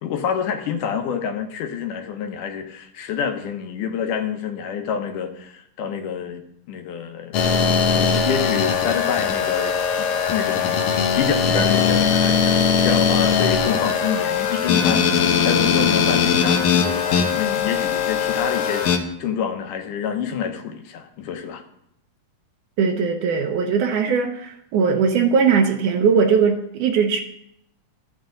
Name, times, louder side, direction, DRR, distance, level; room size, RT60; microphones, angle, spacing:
voice 1, 0.0-6.4 6.7-7.4 7.9-21.6, left 7 dB, 85° left, 5 dB, 2.5 m, -28 dB
sound 1, 7.3-19.0, left 6 dB, 65° left, 1.6 m, -20 dB
voice 2, 22.8-27.2, right 6 dB, 80° right, 3 dB, 2.4 m, -19 dB
13.0 x 9.2 x 3.8 m, 0.77 s
omnidirectional pair, 3.6 m